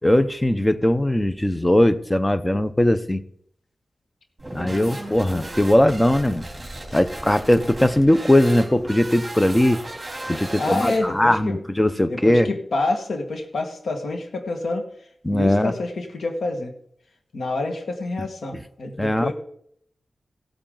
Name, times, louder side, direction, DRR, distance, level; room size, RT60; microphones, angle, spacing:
voice 1, 0.0-3.2 4.5-6.4 6.9-9.8 10.3-12.5 15.2-15.7 18.2-18.3 19.0-19.3, left 1 dB, 10° left, 12 dB, 0.7 m, -19 dB
sound 1, 4.4-11.4, right 1 dB, 20° right, 2.9 m, -36 dB
voice 2, 10.6-11.6 12.1-14.9 15.3-16.7 17.3-19.3, left 2 dB, 90° left, 5 dB, 1.7 m, -27 dB
16.5 x 8.6 x 3.9 m, 0.67 s
wide cardioid pair, 105°, 0 cm